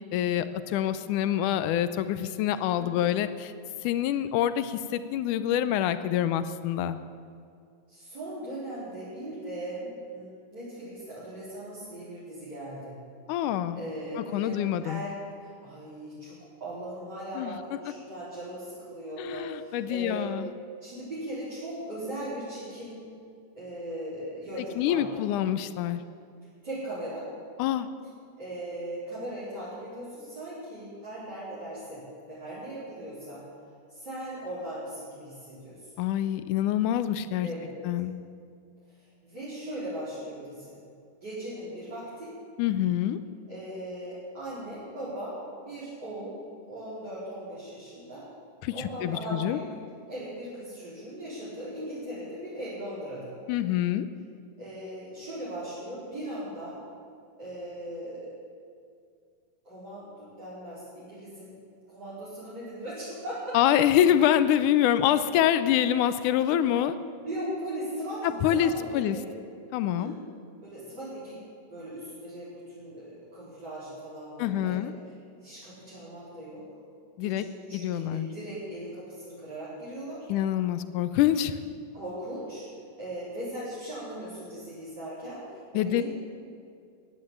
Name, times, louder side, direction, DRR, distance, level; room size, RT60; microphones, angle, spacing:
voice 1, 0.1-3.5 3.8-7.0 13.3-13.8 14.3-15.0 17.4-17.6 19.2-20.5 24.6-26.0 27.6-27.9 36.0-37.5 37.9-38.1 42.6-43.2 48.6-49.6 53.5-54.1 63.5-67.0 68.4-69.2 69.7-70.1 74.4-74.9 77.2-77.5 77.7-78.3 80.3-81.6 85.7-86.0, left 11 dB, 90° left, 12 dB, 2.1 m, -26 dB
voice 2, 2.8-3.2 7.9-13.0 13.8-20.3 20.8-23.0 23.6-25.2 26.6-27.3 28.4-33.4 33.9-35.9 37.4-37.7 39.0-40.8 41.2-42.3 43.5-45.3 45.7-46.4 46.7-48.3 48.7-49.7 50.1-53.4 54.6-56.8 57.4-58.3 59.6-61.5 61.9-63.5 67.2-69.2 69.9-70.2 70.6-71.4 71.7-74.8 75.4-76.7 77.2-80.3 81.9-82.6 83.0-86.0, right 1 dB, 30° right, -12 dB, 5.3 m, -38 dB
15.0 x 10.5 x 8.5 m, 2.3 s
omnidirectional pair, 3.6 m